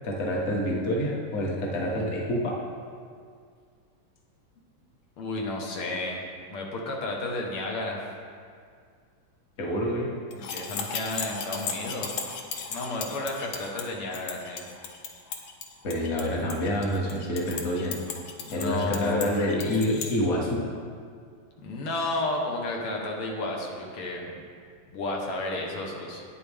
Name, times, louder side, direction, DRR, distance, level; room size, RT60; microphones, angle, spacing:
voice 1, 0.0-2.6 9.6-10.1 15.8-18.0 18.5-20.6, equal, 35° left, -2 dB, 1.5 m, -27 dB
voice 2, 5.2-6.2 6.5-8.0 10.3-12.2 12.7-14.6 18.4-19.4 21.6-24.3 24.9-26.2, left 2 dB, 90° left, -1 dB, 2.2 m, -32 dB
sound 1, 10.3-20.1, left 6 dB, 70° left, 1.6 m, -36 dB
11.5 x 9.4 x 3.5 m, 2.1 s
omnidirectional pair, 2.3 m